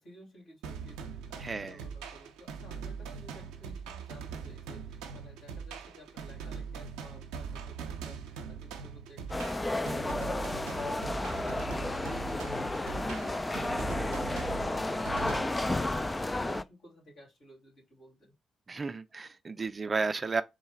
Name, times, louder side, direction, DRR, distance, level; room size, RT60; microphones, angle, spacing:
voice 1, 0.0-18.3, equal, 70° left, 2.5 m, -54 dB
sound 1, 0.6-15.4, right 6 dB, 85° right, 0.6 m, -41 dB
voice 2, 1.4-1.8 13.1-13.2 18.7-20.4, right 4 dB, 40° right, 0.5 m, -33 dB
sound 2, 9.3-16.6, left 2 dB, 20° left, 0.4 m, -32 dB
4.0 x 2.4 x 4.6 m
hypercardioid pair, 45°, 0 cm